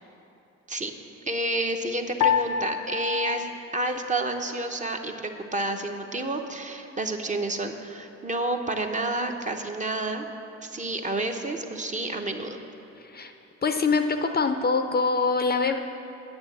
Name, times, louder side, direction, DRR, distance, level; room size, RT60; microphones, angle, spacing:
voice 1, 1.3-3.5 3.7-10.3 10.6-12.6, right 2 dB, 25° right, 4 dB, 0.8 m, -30 dB
Piano, 2.2-4.7, left 8 dB, 85° left, 0.6 m, -28 dB
voice 2, 13.0-13.3 13.6-15.8, left 4 dB, 30° left, 7 dB, 0.5 m, -24 dB
8.8 x 6.9 x 7.2 m, 2.8 s
cardioid pair, 90°, 30 cm